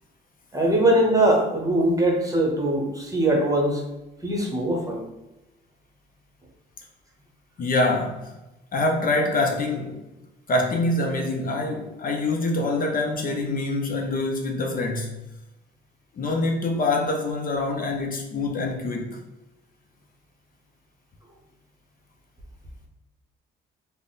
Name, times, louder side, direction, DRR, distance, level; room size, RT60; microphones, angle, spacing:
voice 1, 0.5-3.8 4.2-5.0, right 1 dB, 15° right, 0 dB, 1.0 m, -21 dB
voice 2, 7.6-8.3 8.7-10.0 10.5-15.2 16.2-19.2, left 2 dB, 45° left, 2 dB, 0.6 m, -25 dB
3.4 x 2.1 x 4.0 m, 0.99 s
cardioid pair, 90°, 20 cm